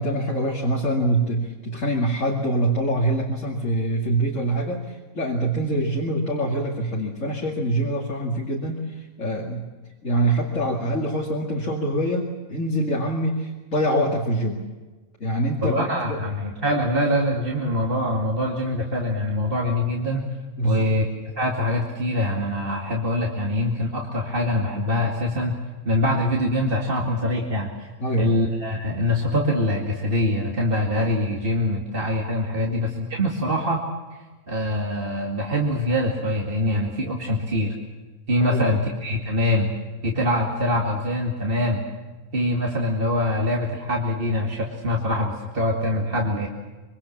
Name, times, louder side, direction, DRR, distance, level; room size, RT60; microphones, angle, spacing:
voice 1, 0.0-9.7 10.0-14.6 15.2-16.2 20.6-20.9 28.0-28.4 32.6-32.7 38.5-38.8, right 1 dB, 55° left, -1 dB, 2.9 m, -25 dB
voice 2, 15.6-20.3 20.6-21.1 21.4-25.6 25.8-27.7 28.2-33.8 34.5-37.7 38.3-39.7 40.0-41.8 42.3-46.5, left 1 dB, 40° right, -1 dB, 2.5 m, -24 dB
25.5 x 23.5 x 7.3 m, 1.2 s
omnidirectional pair, 1.5 m